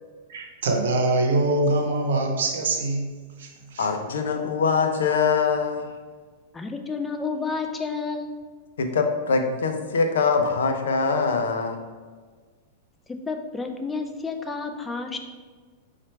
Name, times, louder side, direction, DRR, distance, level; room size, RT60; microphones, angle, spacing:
voice 1, 0.3-3.1 3.4-3.9, right 2 dB, 70° right, 2 dB, 0.8 m, -24 dB
voice 2, 3.8-5.9 8.8-11.8, left 5 dB, 75° left, 5 dB, 0.5 m, -23 dB
voice 3, 6.5-8.4 13.3-15.2, left 4 dB, 15° left, 5 dB, 0.5 m, -30 dB
4.3 x 2.4 x 4.4 m, 1.5 s
hypercardioid pair, 105°, 0 cm